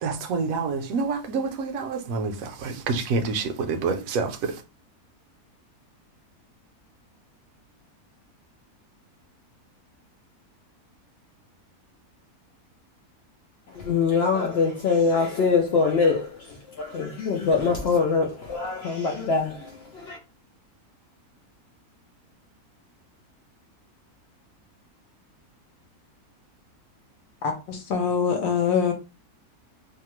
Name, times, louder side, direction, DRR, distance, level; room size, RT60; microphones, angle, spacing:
voice 1, 0.0-2.3 2.6-4.4, right 4 dB, 70° right, 0.9 m, -27 dB
voice 2, 13.8-16.3 16.8-19.6 19.9-20.2, left 5 dB, 90° left, 0.5 m, -23 dB
voice 3, 27.4-28.9, left 6 dB, 70° left, 1.0 m, -24 dB
2.7 x 2.2 x 2.9 m
omnidirectional pair, 1.6 m